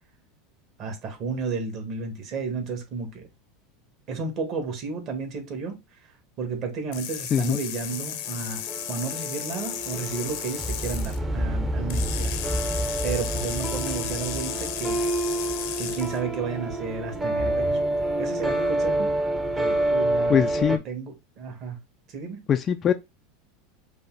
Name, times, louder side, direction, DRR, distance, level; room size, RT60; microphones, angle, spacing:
voice 1, 0.8-3.3 4.1-6.1 6.4-8.6 8.9-12.6 13.0-15.0 15.8-19.1 19.5-21.8 22.1-22.4, right 4 dB, 45° right, 1.5 m, -33 dB
sound 1, 6.9-11.2 11.9-16.2, left 11 dB, 70° left, 0.7 m, -34 dB
sound 2, 7.9-20.8, right 1 dB, 15° right, 0.7 m, -28 dB
voice 2, 20.3-20.8 22.5-22.9, left 8 dB, 30° left, 0.3 m, -22 dB
5.3 x 2.1 x 3.8 m
supercardioid pair, 125°, 0 cm